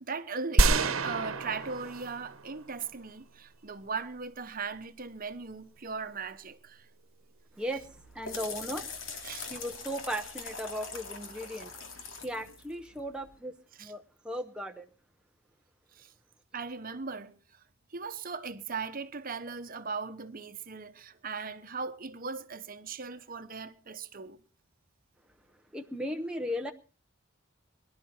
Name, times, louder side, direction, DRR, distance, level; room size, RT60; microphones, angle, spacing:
voice 1, 0.0-6.9 9.2-9.5 13.8-13.9 15.9-16.1 16.5-17.6 17.9-24.4, right 5 dB, 45° right, 1.0 m, -38 dB
sound 1, 0.6-2.9, right 3 dB, 75° right, 1.1 m, -27 dB
voice 2, 7.6-8.9 9.5-11.7 12.2-13.5 13.8-14.9 25.7-26.7, equal, 5° right, 0.7 m, -36 dB
sound 2, 7.8-13.3, left 4 dB, 70° left, 2.5 m, -43 dB
22.5 x 11.5 x 4.4 m
head